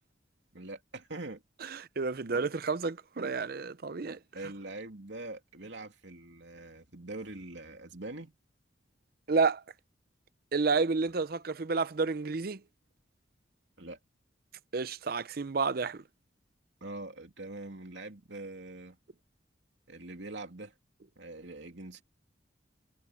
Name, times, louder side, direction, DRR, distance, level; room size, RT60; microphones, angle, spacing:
voice 1, 0.5-1.4 4.3-8.3 13.8-14.0 16.8-19.0 19.9-20.7 21.2-22.0, right 2 dB, 70° right, 2.9 m, -43 dB
voice 2, 1.6-4.2 9.3-9.6 10.5-12.6 14.7-16.0, right 4 dB, 50° right, 0.6 m, -30 dB
head